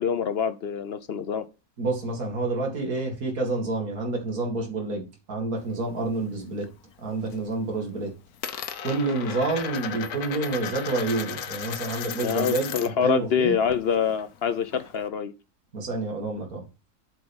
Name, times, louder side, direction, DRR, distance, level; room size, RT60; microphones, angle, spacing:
voice 1, 0.0-1.4 12.2-15.3, left 7 dB, 55° left, 0.7 m, -25 dB
voice 2, 1.8-6.7 7.0-8.1 8.8-12.7 13.0-13.6 15.7-16.6, right 3 dB, 65° right, 2.7 m, -28 dB
Coin (dropping), 5.6-6.7 7.0-7.5 7.8-13.1 13.4-15.1, left 8 dB, 75° left, 1.3 m, -36 dB
7.9 x 4.9 x 5.4 m
omnidirectional pair, 1.6 m